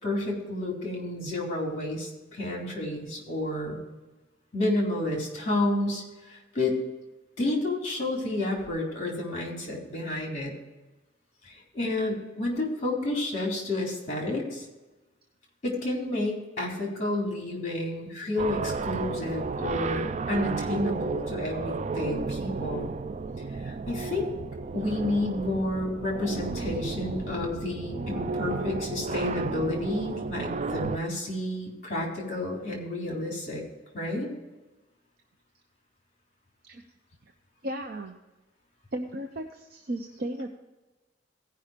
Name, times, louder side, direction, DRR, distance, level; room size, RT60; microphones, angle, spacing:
voice 1, 0.0-3.8 4.5-6.8 7.4-10.5 11.4-14.7 15.6-22.9 23.6-24.3 24.7-33.6 33.9-34.3, left 1 dB, 40° left, -1 dB, 3.7 m, -30 dB
sound 1, 18.4-31.0, right 4 dB, 40° right, 0.4 m, -33 dB
voice 2, 37.6-38.2 38.9-40.5, right 1 dB, 55° right, 3 dB, 0.8 m, -35 dB
16.5 x 5.6 x 5.0 m, 1.1 s
head